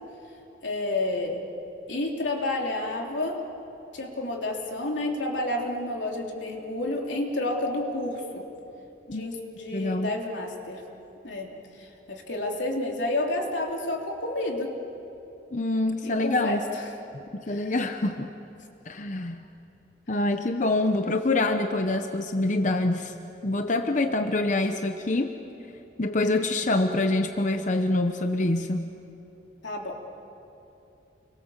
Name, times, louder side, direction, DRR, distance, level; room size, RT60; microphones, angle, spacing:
voice 1, 0.6-1.4 1.9-3.4 3.9-8.5 9.1-10.8 11.2-11.5 11.7-14.7 16.0-16.6 17.5-17.7 29.6-30.0, left 2 dB, 85° left, 0 dB, 3.5 m, -30 dB
voice 2, 9.7-10.1 15.5-16.6 17.3-18.3 18.9-19.4 20.1-23.1 23.4-25.4 26.0-28.9, left 2 dB, 40° left, 6 dB, 0.9 m, -25 dB
29.5 x 23.0 x 7.4 m, 2.9 s
head